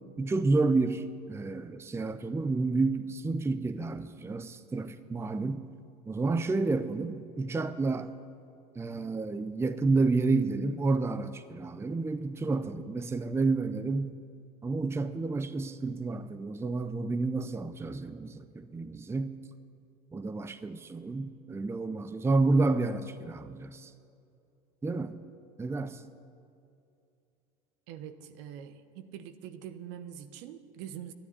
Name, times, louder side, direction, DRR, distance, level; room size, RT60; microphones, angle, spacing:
voice 1, 0.2-5.7 6.1-8.1 8.7-14.2 14.6-19.4 20.1-23.9 24.8-25.1 25.6-26.0, right 3 dB, 15° right, 11 dB, 0.6 m, -30 dB
voice 2, 27.9-31.1, right 9 dB, 60° right, 10 dB, 1.0 m, -44 dB
12.0 x 10.0 x 9.8 m, 2.5 s
hypercardioid pair, 80°, 20 cm